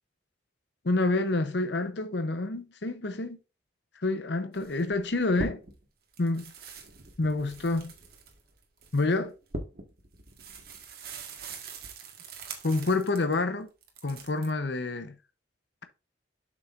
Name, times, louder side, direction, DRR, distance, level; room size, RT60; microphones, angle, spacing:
voice 1, 0.8-3.4 4.0-5.6 6.2-6.4 7.2-7.9 8.9-9.3 12.6-13.7 14.0-15.2, left 2 dB, 65° left, 0.8 m, -28 dB
sound 1, 4.5-5.9 6.1-13.4 13.8-14.5, right 3 dB, 55° right, 1.5 m, -42 dB
7.8 x 6.1 x 2.5 m
head